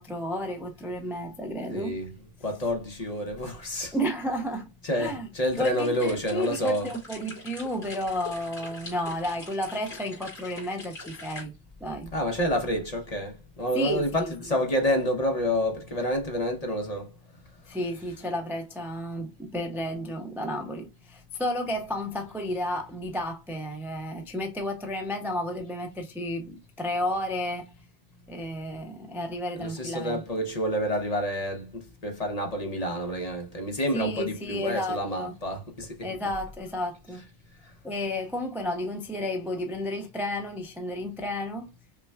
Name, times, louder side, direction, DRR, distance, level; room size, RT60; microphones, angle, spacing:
voice 1, 0.0-1.9 3.9-4.7 5.0-5.3 5.6-11.5 11.8-12.1 13.7-14.3 17.7-27.6 28.3-30.2 33.9-35.4 36.0-37.2 37.8-41.7, left 1 dB, 5° right, 0.4 m, -32 dB
voice 2, 1.7-2.1 2.4-4.0 4.8-6.9 12.1-17.1 29.6-36.1, equal, 40° left, 0.9 m, -28 dB
sound 1, 5.5-11.4, left 2 dB, 75° left, 2.7 m, -44 dB
5.7 x 2.2 x 2.2 m
omnidirectional pair, 1.1 m